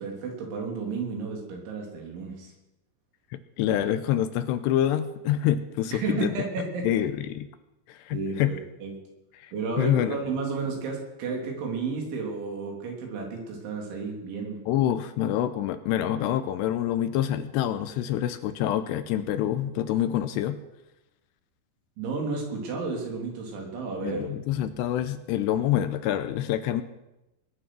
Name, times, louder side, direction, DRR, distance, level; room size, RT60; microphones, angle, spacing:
voice 1, 0.0-2.5 5.9-6.8 8.1-8.9 9.5-14.6 22.0-24.4, right 4 dB, 85° right, 0 dB, 5.5 m, -32 dB
voice 2, 3.6-6.4 6.8-7.5 7.9-8.5 9.4-10.2 14.7-20.6 24.0-26.8, left 11 dB, 80° left, 11 dB, 2.7 m, -26 dB
20.5 x 9.8 x 6.2 m, 0.95 s
omnidirectional pair, 5.2 m